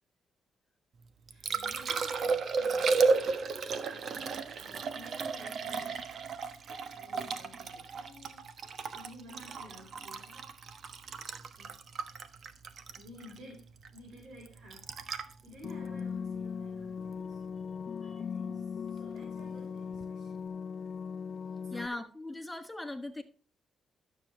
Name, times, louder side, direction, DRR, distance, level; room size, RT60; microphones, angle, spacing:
Liquid, 1.0-17.1 19.9-20.1, right 4 dB, 55° right, 1.1 m, -34 dB
voice 1, 1.3-3.1 3.8-6.1 6.9-8.5 8.9-10.6 11.6-11.8 12.8-14.9 15.4-17.4 18.0-20.5 20.8-20.9 21.7-22.0, equal, 75° right, 4.1 m, -53 dB
sound 1, 15.6-21.9, left 6 dB, 50° left, 0.6 m, -39 dB
voice 2, 21.7-23.2, left 2 dB, 10° left, 1.3 m, -39 dB
12.5 x 7.1 x 3.2 m
cardioid pair, 90°, 0 cm